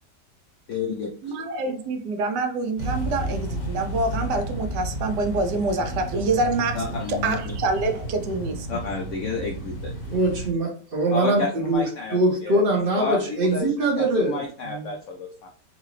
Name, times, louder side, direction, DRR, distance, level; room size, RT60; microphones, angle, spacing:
voice 1, 0.7-1.1 6.7-7.5 7.9-8.0 8.7-9.9 11.1-12.6 13.0-15.5, left 4 dB, 75° left, 0.7 m, -30 dB
voice 2, 1.2-6.8 7.2-8.7, right 3 dB, 80° right, 1.2 m, -26 dB
sound 1, 2.8-10.5, right 1 dB, 55° left, 1.0 m, -32 dB
voice 3, 10.0-11.8 12.1-14.9, right 2 dB, 45° right, 0.8 m, -23 dB
3.8 x 2.4 x 3.0 m
omnidirectional pair, 1.8 m